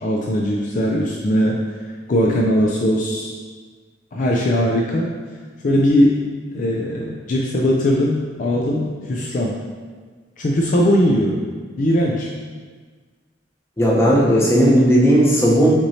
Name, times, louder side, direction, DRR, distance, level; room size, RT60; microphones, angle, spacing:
voice 1, 0.0-1.6 2.1-3.3 4.1-5.1 5.6-6.2 6.5-9.6 10.4-11.4 11.8-12.3, equal, 45° left, -2 dB, 0.4 m, -19 dB
voice 2, 13.8-15.7, equal, 15° left, -5 dB, 0.8 m, -15 dB
5.8 x 3.0 x 2.7 m, 1.5 s
head